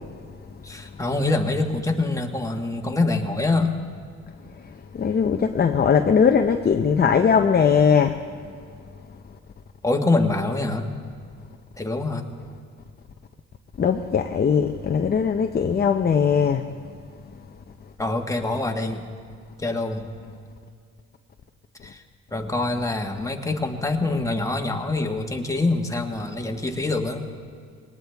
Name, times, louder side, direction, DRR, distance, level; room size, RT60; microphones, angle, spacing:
voice 1, 0.6-3.7 9.8-10.9 11.8-12.2 18.0-19.0 19.6-20.1 21.8-22.0 22.3-27.3, left 2 dB, 10° left, 3 dB, 1.5 m, -25 dB
voice 2, 5.0-8.2 13.8-16.6, left 6 dB, 30° left, 5 dB, 0.7 m, -19 dB
21.0 x 18.5 x 3.5 m, 2.2 s
cardioid pair, 90°, 30 cm